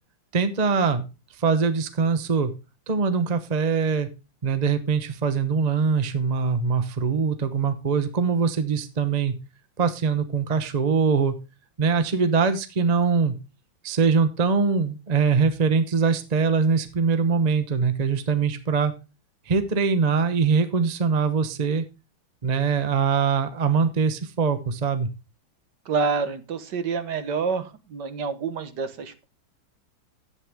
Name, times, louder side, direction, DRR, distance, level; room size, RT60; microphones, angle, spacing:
voice 1, 0.3-1.1 1.4-2.5 2.9-4.1 4.4-9.4 9.8-11.4 11.8-13.4 13.8-18.9 19.5-21.8 22.4-25.1, right 5 dB, 30° right, 10 dB, 0.8 m, -22 dB
voice 2, 25.9-29.2, right 5 dB, 65° right, 10 dB, 1.7 m, -28 dB
11.0 x 9.0 x 3.6 m, 0.28 s
omnidirectional pair, 2.1 m